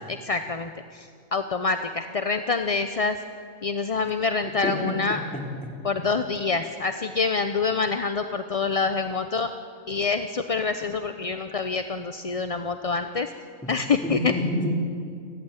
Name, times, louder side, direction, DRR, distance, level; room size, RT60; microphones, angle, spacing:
voice 1, 0.1-3.2 3.6-5.2 5.8-9.5 9.9-13.3 13.7-14.3, left 4 dB, 35° left, 8 dB, 0.6 m, -26 dB
voice 2, 4.6-4.9 5.3-5.7 13.6-13.7 14.0-14.8, equal, 5° left, 1 dB, 3.4 m, -28 dB
29.0 x 14.5 x 9.2 m, 2.3 s
omnidirectional pair, 1.5 m